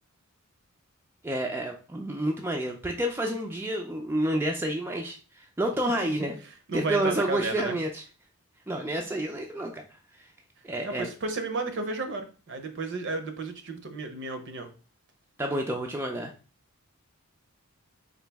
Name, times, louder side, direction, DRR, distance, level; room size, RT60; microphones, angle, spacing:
voice 1, 1.2-6.4 6.7-8.0 8.7-10.3 10.6-11.1 15.4-16.3, right 1 dB, 10° right, 1 dB, 0.4 m, -29 dB
voice 2, 6.7-7.8 10.8-14.7, right 3 dB, 55° right, 6 dB, 0.7 m, -32 dB
4.0 x 2.6 x 3.4 m, 0.35 s
head